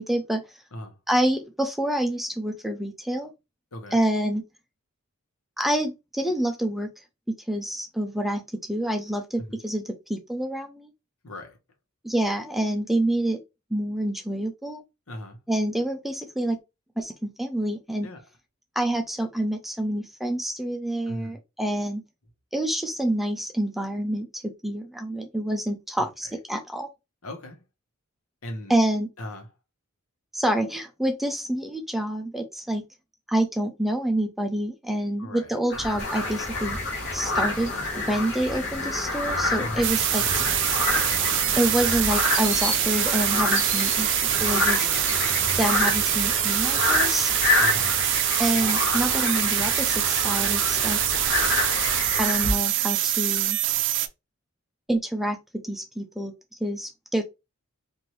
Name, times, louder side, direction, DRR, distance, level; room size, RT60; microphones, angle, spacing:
voice 1, 0.0-0.6 1.1-3.3 3.9-4.4 5.6-6.9 7.5-8.4 8.7-10.9 12.0-13.4 13.7-14.8 15.5-16.6 17.0-18.1 18.8-22.0 22.5-26.9 28.7-29.1 30.3-32.8 33.3-36.8 37.1-40.2 41.6-44.1 44.4-44.9 45.6-47.3 48.4-51.0 52.2-53.6 54.9-55.4 55.6-56.3 56.6-57.2, right 1 dB, ahead, 0.5 m, -27 dB
voice 2, 11.2-11.6 15.1-15.4 18.0-18.2 21.1-21.4 26.0-26.3 27.2-27.6 28.4-28.8 29.2-29.5 35.2-35.6 39.6-39.9 44.8-45.1 47.6-48.0, left 1 dB, 75° left, 1.1 m, -38 dB
sound 1, 35.7-52.5, left 2 dB, 50° left, 1.3 m, -28 dB
sound 2, 36.0-47.1, left 2 dB, 35° left, 1.2 m, -38 dB
sound 3, 39.8-54.1, right 11 dB, 55° right, 0.5 m, -24 dB
4.4 x 2.6 x 3.2 m
head